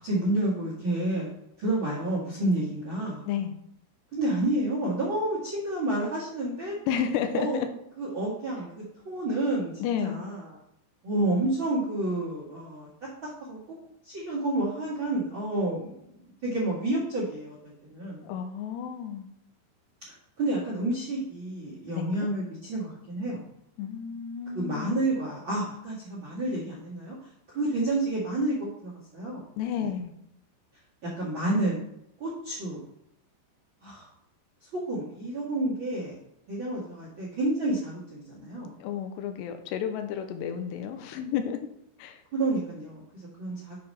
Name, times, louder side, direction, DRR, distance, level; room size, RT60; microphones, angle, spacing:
voice 1, 0.0-1.3 1.6-3.2 4.1-6.7 7.3-7.6 8.0-10.6 11.0-13.7 14.0-15.9 16.4-18.3 20.4-23.5 24.5-29.5 29.8-29.9 31.0-31.8 32.2-32.8 33.8-34.1 34.7-36.2 36.5-38.8 42.3-43.8, right 2 dB, 50° right, -5 dB, 1.5 m, -30 dB
voice 2, 6.9-7.7 9.8-10.2 18.2-19.3 21.9-22.3 23.8-25.0 29.6-30.1 38.8-41.6 42.0-42.2, left 8 dB, 80° left, 7 dB, 2.5 m, -31 dB
8.5 x 4.8 x 5.6 m, 0.78 s
omnidirectional pair, 5.7 m